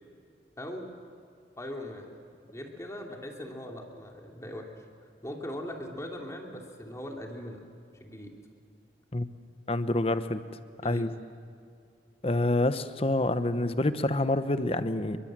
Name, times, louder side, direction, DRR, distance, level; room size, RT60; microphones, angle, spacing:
voice 1, 0.6-0.9 1.6-2.1 2.5-4.7 5.2-7.7 8.0-8.3 10.8-11.1, left 1 dB, 15° left, 1 dB, 2.8 m, -40 dB
voice 2, 9.7-10.4 10.8-11.1 12.2-15.2, left 2 dB, 35° left, 12 dB, 1.0 m, -27 dB
29.0 x 23.5 x 7.6 m, 2.5 s
head